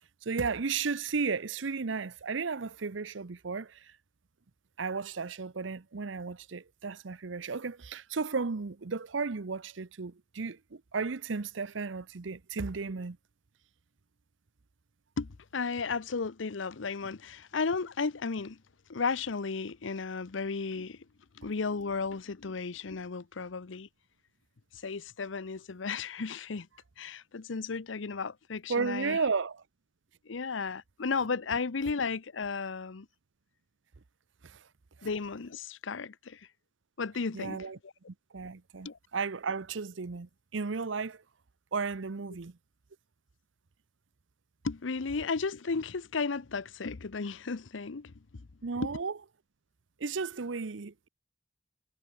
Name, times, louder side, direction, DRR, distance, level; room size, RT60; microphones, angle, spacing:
voice 1, 0.2-3.8 4.8-13.2 28.7-29.6 34.4-34.6 37.3-37.8 38.3-41.2 41.7-42.5 48.6-49.1 50.0-51.1, right 4 dB, 75° right, 0.8 m, -34 dB
voice 2, 15.2-18.6 18.9-21.0 21.4-23.9 24.8-26.7 27.0-29.2 30.3-33.1 35.0-36.4 37.0-37.9 38.8-39.0 44.6-48.4 48.8-48.9, left 4 dB, 80° left, 0.7 m, -34 dB
head